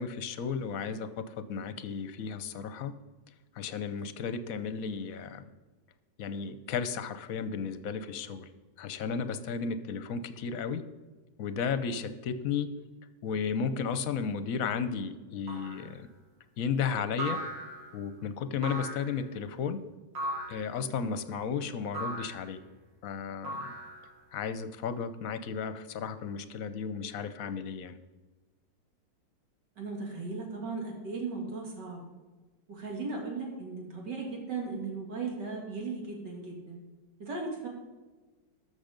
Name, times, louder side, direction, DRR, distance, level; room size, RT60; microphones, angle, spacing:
voice 1, 0.0-2.9 3.6-5.5 6.2-8.5 8.8-10.8 11.4-12.7 13.2-16.1 16.6-17.4 17.9-19.9 20.5-22.6 23.0-23.7 24.3-28.0, left 6 dB, 60° left, 12 dB, 1.0 m, -34 dB
sound 1, 15.5-15.9 17.2-18.0 18.6-19.2 20.1-20.7 21.9-22.5 23.4-24.2, right 1 dB, 85° right, 3.0 m, -37 dB
voice 2, 29.8-32.0 32.7-36.8 37.2-37.7, right 4 dB, 70° right, 0 dB, 3.2 m, -37 dB
13.0 x 6.6 x 5.2 m, 1.3 s
omnidirectional pair, 2.0 m